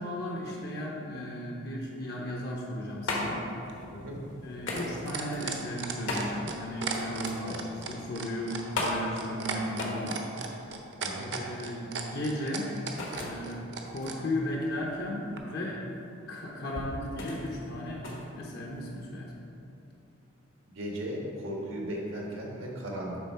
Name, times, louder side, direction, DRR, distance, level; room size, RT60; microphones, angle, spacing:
voice 1, 0.0-3.5 4.4-10.2 11.3-12.7 13.1-13.6 13.8-15.8 16.3-18.0 18.4-19.3, left 1 dB, 50° left, -2 dB, 0.7 m, -35 dB
sound 1, 2.5-19.1, left 2 dB, 70° left, 1.2 m, -38 dB
sound 2, 3.6-14.2 15.4-15.5, right 6 dB, 55° right, 0.6 m, -36 dB
voice 2, 3.9-4.2 7.4-7.6 11.0-11.3 20.7-23.2, equal, 85° right, -3 dB, 1.5 m, -36 dB
8.0 x 3.8 x 5.5 m, 2.8 s
head